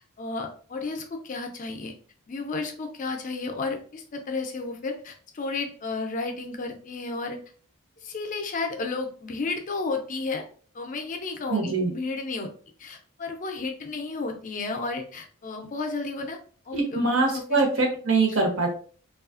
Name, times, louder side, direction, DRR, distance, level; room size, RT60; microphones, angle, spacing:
voice 1, 0.2-1.9 2.3-7.4 8.0-10.5 10.7-12.5 12.8-16.4 16.7-17.6, left 3 dB, 35° left, 4 dB, 0.4 m, -32 dB
voice 2, 11.5-11.9 16.7-18.7, right 3 dB, 65° right, 0 dB, 0.8 m, -23 dB
3.1 x 2.3 x 2.4 m, 0.43 s
head